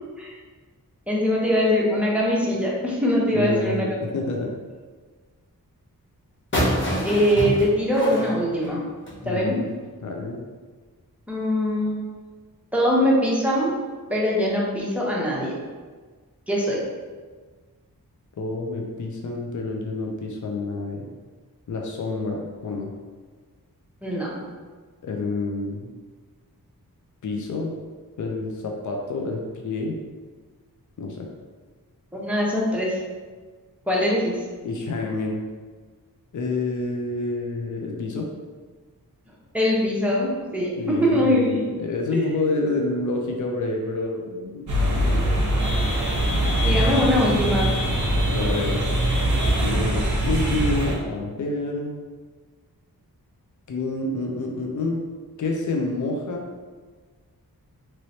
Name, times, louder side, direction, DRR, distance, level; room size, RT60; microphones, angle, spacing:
voice 1, 1.1-4.0 7.0-8.8 9.2-9.6 11.3-12.0 12.7-13.7 14.1-15.6 16.5-16.8 24.0-24.3 32.1-33.0 33.9-34.4 39.5-41.5 42.1-42.4 46.6-47.7, equal, 5° right, -5 dB, 0.8 m, -22 dB
voice 2, 3.3-4.5 9.2-9.7 10.0-10.4 18.4-21.1 21.7-22.9 25.0-25.9 27.2-27.7 28.2-30.0 31.0-31.3 34.6-35.4 36.3-38.3 40.8-45.3 48.3-48.8 49.6-51.9 53.7-55.0 55.4-56.4, left 3 dB, 55° left, 1 dB, 0.5 m, -28 dB
sound 1, 6.5-9.2, equal, 30° left, 0.9 m, -26 dB
sound 2, 44.7-50.9, right 1 dB, 50° right, 0.7 m, -22 dB
3.1 x 3.0 x 2.7 m, 1.4 s
wide cardioid pair, 85°, 37 cm